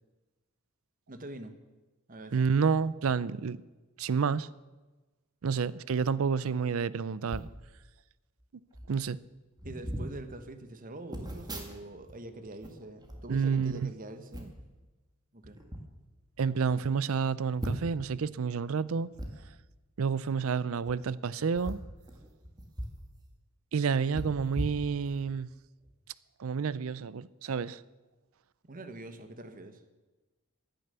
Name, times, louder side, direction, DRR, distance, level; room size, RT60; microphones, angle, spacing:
voice 1, 1.1-1.5 2.1-2.5 9.6-14.6 15.3-15.6 28.6-29.8, right 2 dB, 40° right, 1.2 m, -44 dB
voice 2, 2.3-3.6 4.0-4.5 5.4-7.5 8.9-9.2 13.3-13.9 16.4-19.1 20.0-21.8 23.7-25.5 26.4-27.8, right 5 dB, 65° right, 0.5 m, -29 dB
sound 1, 7.3-7.6 8.4-8.5 8.7-9.0 9.6-10.1 11.1-12.1 12.4-13.8 14.3-14.7 15.4-15.8 16.4-16.5 16.7-16.8 17.6-18.1 19.1-19.3 20.7-20.9 21.5-23.0 23.3-23.4 24.1-25.3 25.8-26.0, equal, 20° right, 1.9 m, -39 dB
16.0 x 10.0 x 6.7 m
head